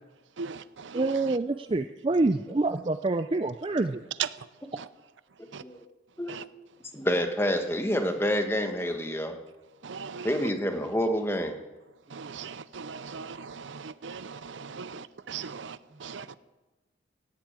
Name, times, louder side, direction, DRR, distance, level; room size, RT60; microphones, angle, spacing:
voice 1, 0.4-1.4 4.2-4.3 4.8-4.9 5.5-5.6 6.3-6.4 9.8-10.4 12.1-16.3, right 6 dB, 85° right, 15 dB, 0.6 m, -38 dB
voice 2, 0.9-4.0, right 2 dB, 30° right, 9 dB, 0.4 m, -26 dB
voice 3, 6.9-9.3 10.2-11.6, equal, 15° left, 5 dB, 1.3 m, -27 dB
16.5 x 8.4 x 8.9 m, 1.1 s
head